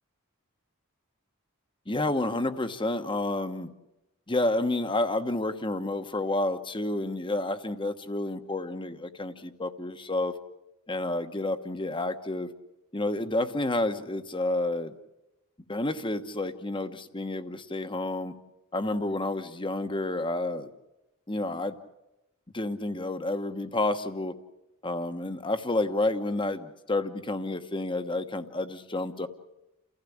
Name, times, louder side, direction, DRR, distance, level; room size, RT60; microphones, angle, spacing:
voice 1, 1.9-3.7 4.3-10.3 10.9-12.5 12.9-14.9 15.7-18.3 18.7-20.7 21.3-21.8 22.5-24.3 24.8-29.3, left 2 dB, 25° left, 9 dB, 1.2 m, -30 dB
30.0 x 15.5 x 8.6 m, 0.94 s
head